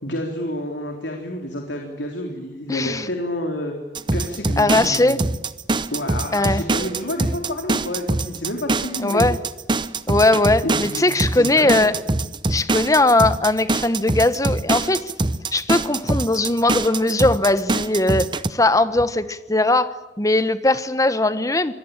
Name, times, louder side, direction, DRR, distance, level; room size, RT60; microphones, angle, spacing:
voice 1, 0.0-3.7 4.1-5.4 5.9-9.2 10.6-11.1 11.3-11.9, left 1 dB, 85° left, 2 dB, 3.7 m, -29 dB
voice 2, 2.7-3.1 4.6-5.2 6.3-6.6 9.0-9.4 10.1-11.9 12.5-15.0 15.5-21.7, left 2 dB, 20° left, 13 dB, 1.2 m, -19 dB
sound 1, 3.9-18.5, right 2 dB, 25° right, 0.8 m, -23 dB
26.0 x 20.0 x 9.1 m, 1.1 s
head